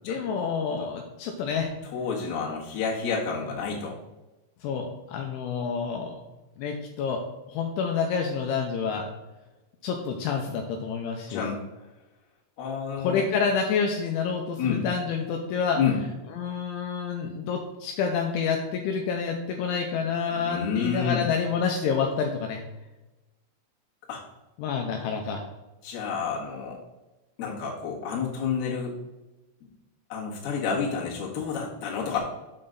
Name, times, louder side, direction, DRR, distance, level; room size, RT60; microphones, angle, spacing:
voice 1, 0.0-1.7 4.6-6.2 6.6-7.2 7.5-9.1 9.8-11.5 13.0-15.8 16.3-22.6 24.6-25.4, left 6 dB, 80° left, 2 dB, 3.0 m, -28 dB
voice 2, 1.8-3.9 11.3-11.6 12.6-13.2 14.6-14.8 15.8-16.0 19.9-20.0 20.3-21.3 24.1-24.2 25.8-26.8 27.4-29.0 30.1-32.2, left 6 dB, 55° left, -4 dB, 2.9 m, -29 dB
7.6 x 6.1 x 3.9 m, 1.1 s
omnidirectional pair, 5.6 m